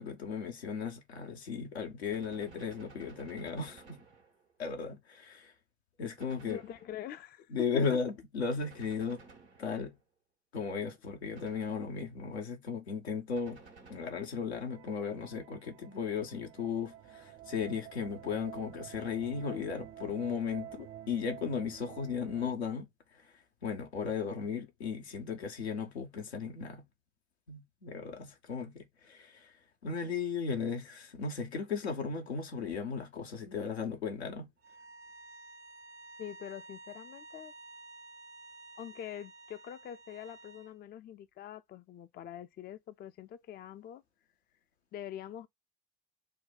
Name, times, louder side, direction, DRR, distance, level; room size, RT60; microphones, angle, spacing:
voice 1, 0.0-4.0 4.6-5.5 6.0-6.6 7.5-9.2 9.6-9.9 10.5-13.6 13.9-22.9 23.1-23.3 23.6-26.8 27.5-29.5 29.8-34.5, left 6 dB, 80° left, 0.8 m, -36 dB
Gunshot gunfire, 2.1-4.6 6.2-7.2 8.6-10.0 11.3-12.2 13.4-14.5, right 4 dB, 90° right, 1.3 m, -56 dB
voice 2, 6.4-7.8 36.2-37.5 38.8-44.0 44.9-45.5, left 10 dB, 30° left, 0.4 m, -44 dB
sound 1, 14.7-22.5, right 12 dB, 45° right, 0.4 m, -50 dB
sound 2, 34.6-40.7, right 2 dB, 65° right, 1.3 m, -52 dB
6.3 x 2.2 x 3.7 m
figure-of-eight pair, 50°, 32 cm